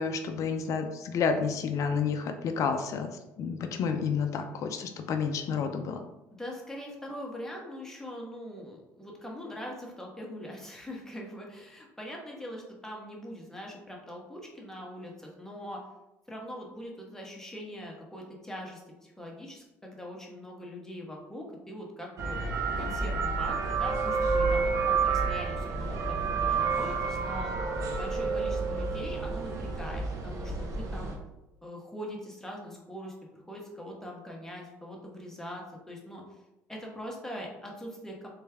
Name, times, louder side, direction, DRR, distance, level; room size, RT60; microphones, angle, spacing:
voice 1, 0.0-3.1 3.4-6.0, left 6 dB, 60° left, 6 dB, 0.5 m, -30 dB
voice 2, 6.3-15.8 16.3-27.5 27.9-31.1 31.6-36.4 36.7-38.3, equal, 5° left, -1 dB, 1.2 m, -42 dB
sound 1, 22.2-31.2, right 4 dB, 60° right, 0.8 m, -29 dB
3.4 x 3.2 x 3.4 m, 0.96 s
supercardioid pair, 85°, 6 cm